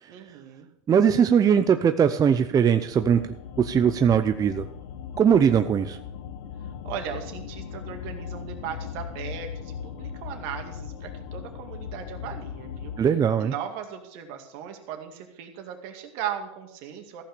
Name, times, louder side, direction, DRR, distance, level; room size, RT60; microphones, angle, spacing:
voice 1, 0.1-0.7 6.8-12.9 13.4-17.2, right 9 dB, 65° right, 4 dB, 2.2 m, -37 dB
voice 2, 0.9-3.2 3.6-4.7 5.2-6.0 13.0-13.5, right 7 dB, 25° right, 9 dB, 0.5 m, -20 dB
sound 1, 2.9-13.1, left 8 dB, 75° left, 1.2 m, -38 dB
14.5 x 5.7 x 6.7 m, 0.80 s
supercardioid pair, 105°, 15 cm